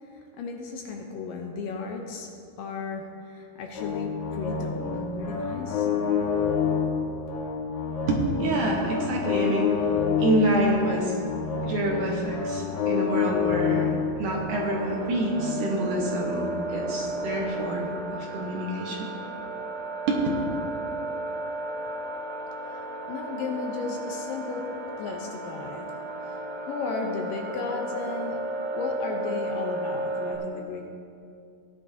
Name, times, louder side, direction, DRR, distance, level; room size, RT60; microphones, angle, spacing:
voice 1, 0.1-2.3 2.6-5.9 22.7-24.7 25.0-25.9 26.2-28.4 28.7-30.9, left 4 dB, 75° left, 2 dB, 2.3 m, -35 dB
sound 1, 3.7-17.8, left 6 dB, 55° left, 1.7 m, -29 dB
voice 2, 8.1-9.8 10.2-11.2 11.6-13.9 14.2-16.4 16.7-19.1 20.1-20.2, right 1 dB, 65° right, -2 dB, 2.3 m, -27 dB
sound 2, 14.5-30.4, right 2 dB, 45° right, 1.4 m, -34 dB
17.5 x 11.0 x 2.8 m, 2.5 s
omnidirectional pair, 4.4 m